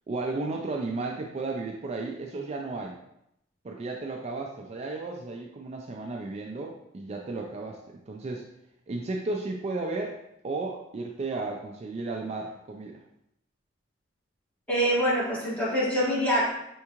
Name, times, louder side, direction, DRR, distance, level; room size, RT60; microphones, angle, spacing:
voice 1, 0.1-3.0 3.6-7.8 8.1-8.5 8.9-13.0, right 3 dB, 35° right, 1 dB, 0.3 m, -34 dB
voice 2, 14.7-16.5, equal, 5° left, -9 dB, 1.7 m, -25 dB
4.6 x 3.5 x 2.9 m, 0.80 s
head